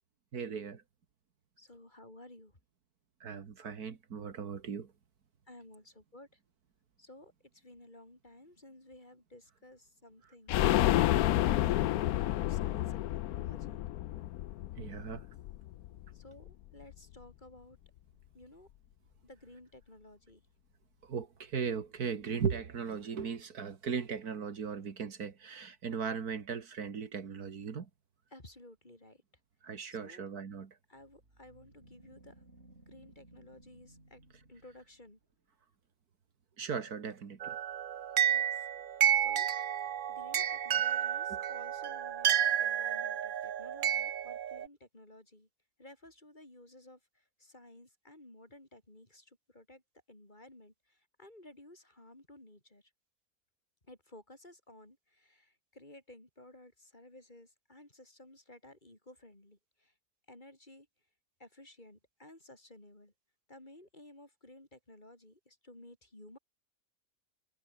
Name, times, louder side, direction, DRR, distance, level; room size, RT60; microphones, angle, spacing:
voice 1, 0.3-0.8 3.2-4.9 14.7-15.3 21.0-27.9 29.6-30.8 36.6-37.6 41.3-41.4, right 6 dB, 70° right, 2.2 m, -38 dB
voice 2, 1.6-2.6 5.5-6.3 7.0-13.8 16.1-17.8 18.3-18.7 19.2-20.4 28.3-29.2 29.9-30.2 30.9-32.4 32.9-34.2 34.5-35.2 38.2-38.6 38.9-39.5 39.8-45.5 45.8-49.8 50.1-52.8 53.9-59.9 60.3-60.9 61.4-63.1 63.5-66.4, left 1 dB, 30° left, 4.5 m, -55 dB
sound 1, 10.5-16.1 16.4-16.5 16.8-16.9, left 14 dB, 75° left, 1.1 m, -30 dB
sound 2, 30.9-35.3, right 1 dB, 40° right, 6.7 m, -60 dB
sound 3, 37.4-44.7, right 9 dB, 85° right, 0.4 m, -31 dB
omnidirectional pair, 1.7 m